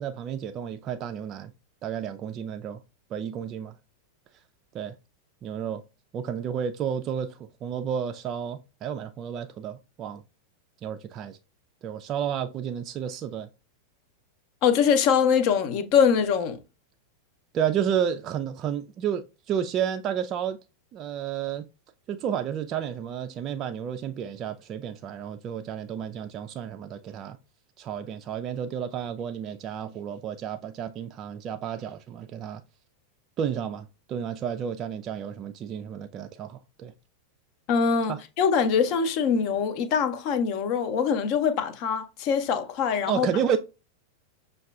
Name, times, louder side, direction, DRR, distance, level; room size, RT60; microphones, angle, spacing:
voice 1, 0.0-1.5 1.8-2.8 3.1-3.7 4.7-5.0 5.4-5.8 6.1-10.2 10.8-11.4 11.8-13.5 17.5-20.6 20.9-21.7 22.1-27.4 27.8-32.6 33.4-36.9 38.1-38.2 43.1-43.6, right 8 dB, 30° right, 0.3 m, -31 dB
voice 2, 14.6-16.6 37.7-43.3, left 6 dB, 40° left, 0.6 m, -23 dB
6.3 x 2.3 x 2.3 m
figure-of-eight pair, 90°, 0 cm